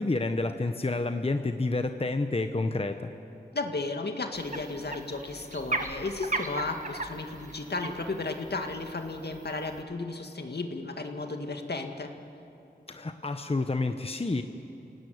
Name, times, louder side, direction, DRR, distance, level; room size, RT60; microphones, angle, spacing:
voice 1, 0.0-3.1 12.9-14.4, left 2 dB, 35° left, 7 dB, 1.0 m, -29 dB
voice 2, 3.5-12.1, left 3 dB, 65° left, 4 dB, 2.1 m, -34 dB
sound 1, 4.3-9.8, right 2 dB, 45° right, 1.8 m, -37 dB
29.0 x 17.5 x 9.5 m, 2.8 s
wide cardioid pair, 70°, 18 cm